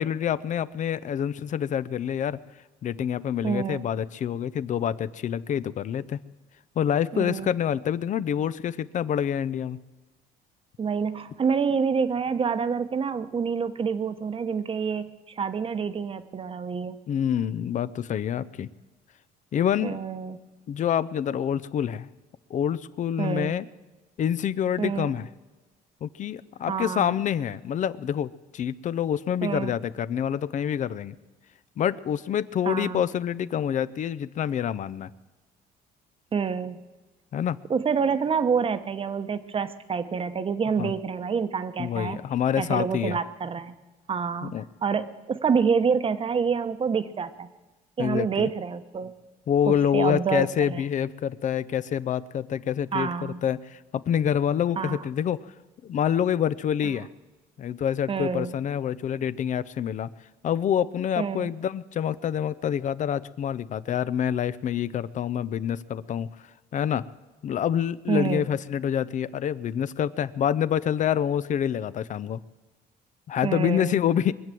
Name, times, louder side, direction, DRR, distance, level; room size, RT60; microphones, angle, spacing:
voice 1, 0.0-2.4 2.8-6.2 6.8-9.8 17.1-18.7 19.5-20.0 20.7-22.1 22.5-23.7 24.2-25.3 26.0-31.2 31.8-35.1 37.3-37.6 40.8-40.9 41.8-43.2 44.4-44.6 48.0-48.5 49.5-55.5 55.8-57.1 57.6-60.1 60.4-66.3 66.7-67.0 67.4-72.4 73.3-74.3, left 9 dB, 45° left, 16 dB, 0.6 m, -27 dB
voice 2, 3.4-3.8 7.1-7.5 10.8-15.1 15.3-17.0 19.8-20.4 23.2-23.5 24.8-25.2 26.7-27.1 29.4-29.7 32.7-33.0 36.3-36.8 37.7-42.2 42.6-43.8 44.1-47.5 48.0-49.1 49.7-50.8 52.9-53.4 54.8-55.0 58.1-58.5 61.2-61.5 68.1-68.5 73.4-74.0, right 6 dB, 30° right, 11 dB, 1.0 m, -27 dB
23.0 x 7.7 x 7.6 m, 1.2 s
cardioid pair, 110°, 17 cm